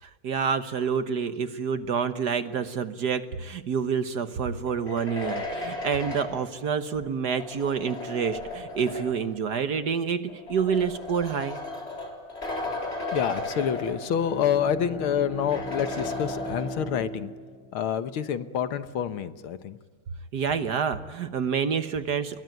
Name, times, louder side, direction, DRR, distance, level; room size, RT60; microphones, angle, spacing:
voice 1, 0.0-11.6 20.3-22.4, right 6 dB, 55° right, 10 dB, 1.4 m, -28 dB
sound 1, 4.7-9.4 10.3-14.5 14.8-14.9 15.5-17.1, left 2 dB, 30° left, 4.2 m, -35 dB
voice 2, 13.1-17.3 17.7-19.8, left 8 dB, 75° left, 11 dB, 2.0 m, -27 dB
Bowed string instrument, 13.6-18.4, equal, ahead, 7.0 m, -39 dB
29.0 x 22.0 x 9.3 m, 1.5 s
omnidirectional pair, 2.4 m